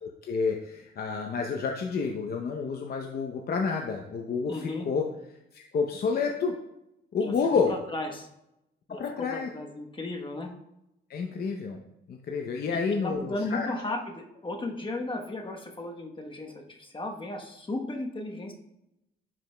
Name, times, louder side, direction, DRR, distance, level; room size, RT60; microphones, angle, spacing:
voice 1, 0.0-5.0 5.5-6.5 7.1-7.7 8.9-9.5 11.1-11.8 12.1-13.7, left 5 dB, 50° left, 2 dB, 0.7 m, -29 dB
voice 2, 4.5-4.9 7.2-8.3 8.9-10.5 12.7-18.5, left 2 dB, 25° left, 2 dB, 1.0 m, -35 dB
10.5 x 5.0 x 2.2 m, 0.86 s
cardioid pair, 90°, 20 cm